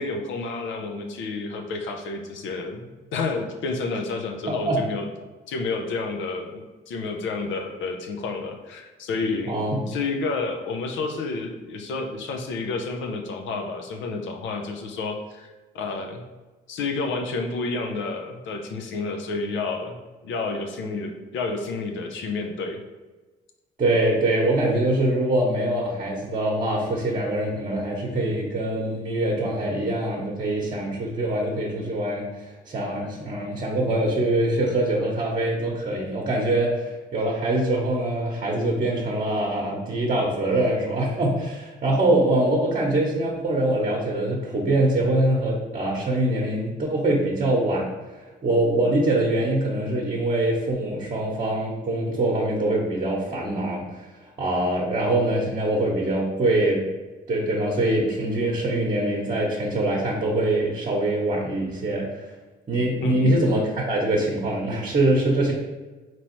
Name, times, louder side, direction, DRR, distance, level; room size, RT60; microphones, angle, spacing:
voice 1, 0.0-5.1 5.5-9.6 9.9-15.5 15.7-16.2 16.7-20.0 20.2-22.8 63.0-63.4, left 3 dB, 70° left, 3 dB, 0.6 m, -30 dB
voice 2, 4.5-4.8 9.5-9.8 23.8-47.9 48.4-54.1 54.4-56.8 57.3-62.3 62.7-65.5, right 1 dB, 40° right, -3 dB, 1.0 m, -24 dB
4.0 x 3.0 x 3.0 m, 1.2 s
supercardioid pair, 60°, 20 cm